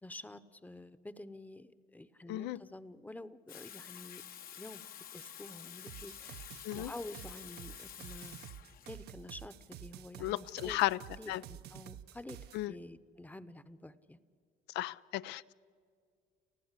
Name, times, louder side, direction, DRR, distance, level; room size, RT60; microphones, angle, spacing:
voice 1, 0.0-4.2 4.5-4.8 5.1-6.5 6.7-8.4 8.9-10.8 11.1-12.4 12.7-14.2, left 1 dB, 10° left, 14 dB, 0.8 m, -49 dB
voice 2, 2.3-2.6 6.6-6.9 10.2-11.0 11.3-11.4 12.5-12.7 14.7-15.5, left 16 dB, 90° left, 16 dB, 0.5 m, -34 dB
Water tap faucet / Sink (filling or washing), 3.5-11.1, left 9 dB, 60° left, 1.0 m, -50 dB
sound 1, 5.9-12.6, right 11 dB, 70° right, 0.8 m, -50 dB
29.5 x 15.0 x 8.2 m, 2.2 s
cardioid pair, 110°, 17 cm